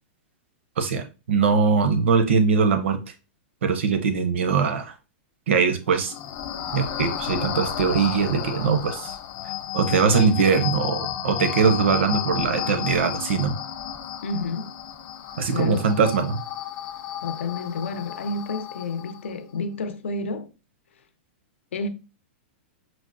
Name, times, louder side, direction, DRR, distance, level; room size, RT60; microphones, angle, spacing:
voice 1, 0.8-3.0 3.6-4.9 5.5-6.1 6.7-9.2 9.7-13.5 15.4-16.4, right 5 dB, 80° right, 0.6 m, -21 dB
sound 1, 5.9-19.3, left 9 dB, 25° left, 0.4 m, -33 dB
voice 2, 14.2-14.8 15.5-15.9 17.2-20.5 21.7-21.9, left 3 dB, 85° left, 0.6 m, -30 dB
6.0 x 2.1 x 2.5 m
supercardioid pair, 170°, 6 cm